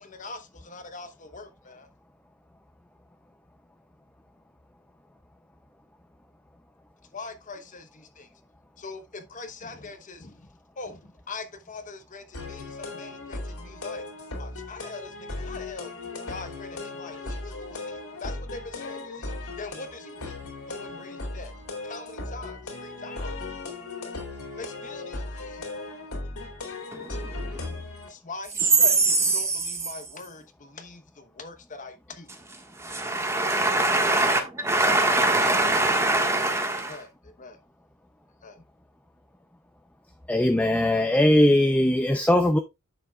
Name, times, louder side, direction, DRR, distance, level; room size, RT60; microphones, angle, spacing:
voice 1, 0.0-1.9 7.1-8.3 8.8-10.4 10.8-14.0 14.4-15.9 16.3-19.3 19.6-20.3 20.7-21.5 21.8-23.3 24.6-25.6 28.1-32.3 36.9-37.6 38.4-38.6, left 3 dB, 35° left, 1.0 m, -42 dB
sound 1, 12.3-28.1, left 2 dB, 80° left, 2.7 m, -37 dB
voice 2, 26.9-27.8 28.6-30.0 32.3-37.0, right 3 dB, 10° right, 1.5 m, -23 dB
voice 3, 40.3-42.6, left 1 dB, 5° left, 0.5 m, -20 dB
10.0 x 7.0 x 2.3 m
head